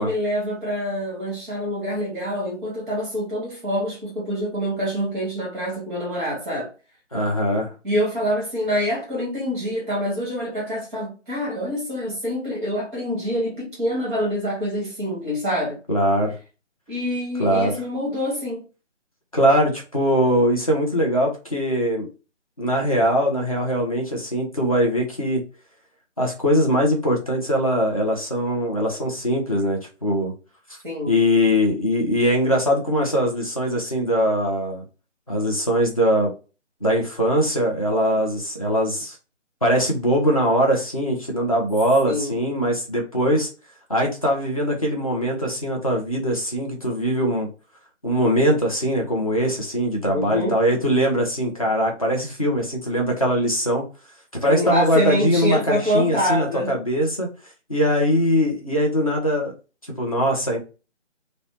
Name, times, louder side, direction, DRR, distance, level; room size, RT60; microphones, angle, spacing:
voice 1, 0.0-6.7 7.8-15.8 16.9-18.6 30.8-31.1 42.1-42.4 50.1-50.6 54.5-56.8, equal, 5° right, 0.8 m, -26 dB
voice 2, 7.1-7.7 15.9-16.3 17.4-17.8 19.3-22.1 22.6-25.4 26.2-30.3 31.1-34.8 35.3-36.3 36.8-39.2 39.6-43.5 43.9-47.5 48.0-53.8 54.4-57.3 57.7-59.5 60.0-60.6, equal, 30° left, 0.5 m, -21 dB
2.6 x 2.0 x 2.9 m
figure-of-eight pair, 155°, 37 cm